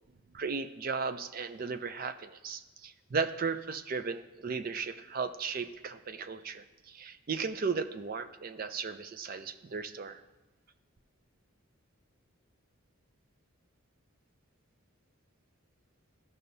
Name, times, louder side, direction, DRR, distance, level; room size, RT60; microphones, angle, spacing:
voice 1, 0.3-10.2, right 5 dB, 40° right, 10 dB, 0.4 m, -36 dB
14.0 x 5.5 x 2.7 m, 1.2 s
head